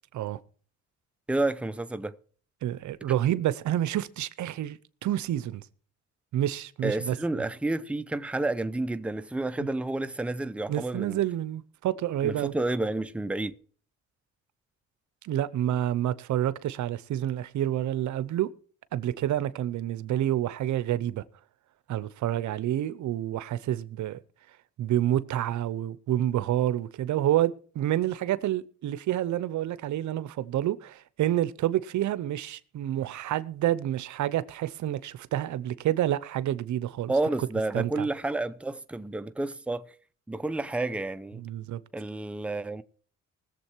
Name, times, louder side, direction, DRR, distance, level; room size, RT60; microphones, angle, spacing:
voice 1, 1.3-2.2 6.8-11.2 12.2-13.5 37.1-39.8 40.3-41.4 41.9-42.8, right 2 dB, 5° right, 0.7 m, -30 dB
voice 2, 2.6-5.6 6.3-7.2 10.7-12.5 15.2-18.5 18.9-21.2 21.9-24.2 24.8-37.1 37.7-38.1 41.4-41.8, right 12 dB, 70° right, 0.8 m, -28 dB
20.0 x 7.4 x 4.5 m
cardioid pair, 90°, 30 cm